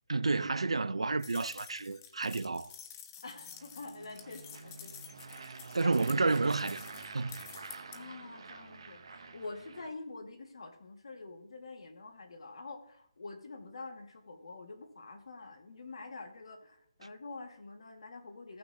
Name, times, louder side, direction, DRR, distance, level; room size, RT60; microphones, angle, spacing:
voice 1, 0.1-2.7 5.7-6.8 7.1-7.4, right 3 dB, 80° right, 0.5 m, -30 dB
sound 1, 1.2-8.0, left 9 dB, 25° left, 0.7 m, -50 dB
voice 2, 3.2-4.9 5.8-6.0 7.9-18.6, left 3 dB, 65° left, 1.7 m, -46 dB
sound 2, 3.3-9.9, right 4 dB, 55° right, 1.0 m, -49 dB
15.5 x 6.0 x 2.8 m
figure-of-eight pair, 150°, 3 cm